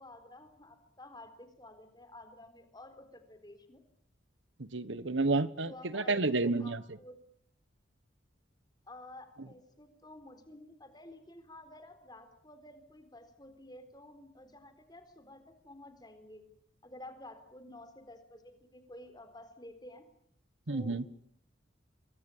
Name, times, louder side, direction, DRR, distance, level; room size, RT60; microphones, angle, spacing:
voice 1, 0.0-3.8 5.7-7.2 8.9-16.4 16.8-20.0 20.7-21.2, left 1 dB, 20° left, 9 dB, 4.0 m, -52 dB
voice 2, 4.6-6.8 20.7-21.0, right 3 dB, 75° right, 16 dB, 1.3 m, -30 dB
26.5 x 22.5 x 8.7 m, 0.66 s
head